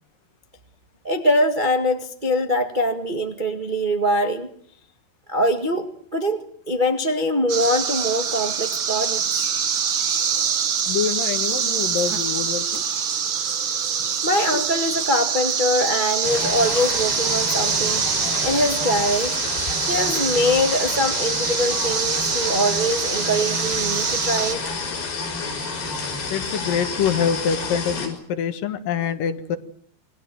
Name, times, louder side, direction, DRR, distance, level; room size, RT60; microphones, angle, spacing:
voice 1, 1.0-4.5 5.3-9.5 14.2-19.4 19.8-24.6, equal, 75° right, 5 dB, 0.4 m, -23 dB
sound 1, 7.5-24.5, right 7 dB, 55° right, 1.4 m, -25 dB
voice 2, 10.9-12.8 14.0-14.1 26.3-29.6, left 7 dB, 65° left, 10 dB, 2.9 m, -25 dB
sound 2, 16.2-28.1, left 4 dB, 90° left, 7.6 m, -29 dB
27.5 x 21.0 x 7.8 m, 0.62 s
omnidirectional pair, 4.5 m